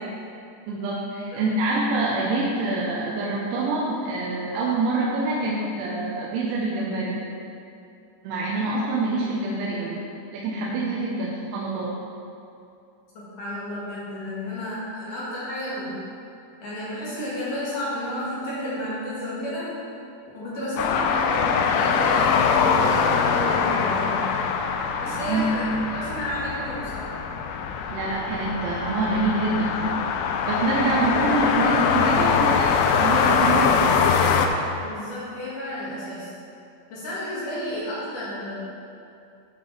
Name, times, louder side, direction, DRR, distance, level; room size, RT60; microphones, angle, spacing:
voice 1, 0.7-7.2 8.3-10.0 10.3-11.9 25.0-25.5 27.9-30.0 30.4-34.0, right 2 dB, 80° right, -5 dB, 3.4 m, -26 dB
voice 2, 13.1-16.0 16.6-19.7 20.3-24.4 25.0-27.1 34.8-36.3 36.9-38.5, equal, 55° left, -9 dB, 2.8 m, -31 dB
sound 1, 20.8-34.5, left 6 dB, 80° left, 2.5 m, -23 dB
13.0 x 7.6 x 3.3 m, 2.5 s
omnidirectional pair, 5.4 m